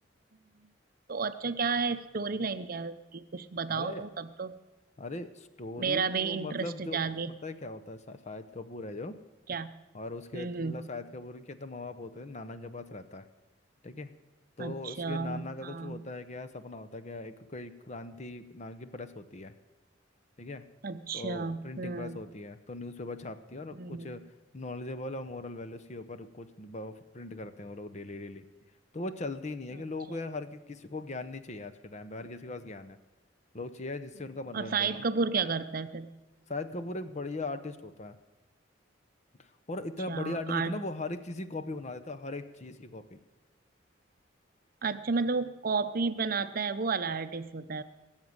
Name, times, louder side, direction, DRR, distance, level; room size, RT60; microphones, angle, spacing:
voice 1, 1.1-4.6 5.8-7.3 9.5-9.7 10.3-10.8 14.6-16.0 20.8-22.2 23.7-24.2 30.1-30.2 34.5-36.1 40.1-40.8 44.8-47.8, right 4 dB, 45° right, 11 dB, 0.6 m, -32 dB
voice 2, 3.7-4.1 5.0-7.0 7.4-9.2 9.9-13.2 13.8-14.1 14.6-19.5 20.4-20.6 21.1-24.2 24.5-28.4 28.9-33.0 33.5-35.0 36.5-38.2 39.4-43.2, left 2 dB, 35° left, 9 dB, 0.8 m, -39 dB
18.0 x 7.3 x 9.5 m, 1.1 s
head